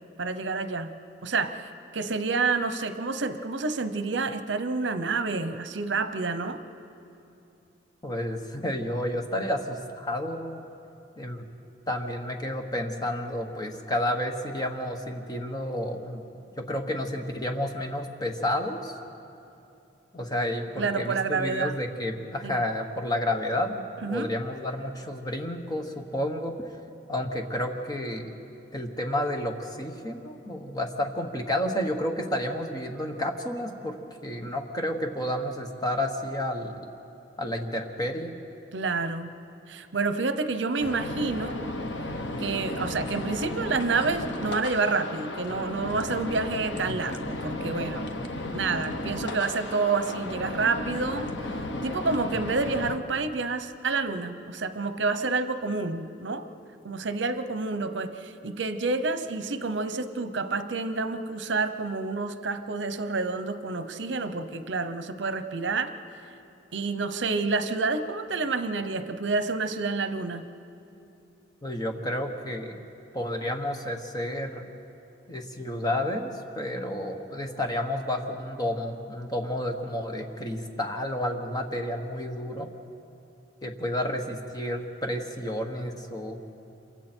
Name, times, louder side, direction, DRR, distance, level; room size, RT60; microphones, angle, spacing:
voice 1, 0.2-6.6 20.8-21.8 22.4-22.5 24.0-24.3 38.7-39.3 39.7-41.7 42.4-48.1 48.5-51.3 51.8-56.5 56.8-65.9 66.7-70.5, right 4 dB, 75° right, 11 dB, 0.8 m, -29 dB
voice 2, 8.0-10.6 11.2-11.4 11.9-16.2 16.7-19.0 20.1-23.8 24.1-26.5 27.1-28.3 28.7-36.9 37.4-38.3 71.6-72.8 73.1-74.6 75.3-82.7 83.6-86.6, left 1 dB, 20° left, 4 dB, 1.3 m, -31 dB
sound 1, 40.8-53.0, left 1 dB, 75° left, 1.2 m, -34 dB
27.0 x 23.5 x 4.5 m, 2.8 s
head